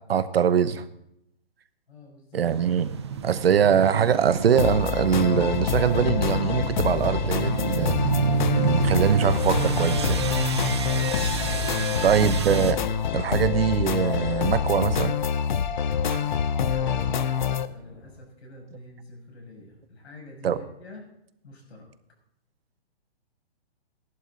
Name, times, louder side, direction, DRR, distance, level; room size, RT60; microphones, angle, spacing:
voice 1, 0.1-0.8 2.3-2.9 3.2-8.0 8.6-10.2 12.0-12.8 13.1-15.1 16.1-16.2 20.4-20.6, right 8 dB, 65° right, 13 dB, 1.1 m, -23 dB
voice 2, 1.9-2.5 12.0-12.2 16.2-21.1 21.4-21.9, left 2 dB, 85° left, 1 dB, 6.6 m, -46 dB
sound 1, 2.4-12.7, right 7 dB, 25° right, 0.6 m, -29 dB
sound 2, 4.6-17.7, left 7 dB, 45° left, 0.6 m, -26 dB
sound 3, 6.1-18.2, equal, 20° left, 4.6 m, -50 dB
16.0 x 11.0 x 3.9 m, 0.79 s
hypercardioid pair, 175°, 32 cm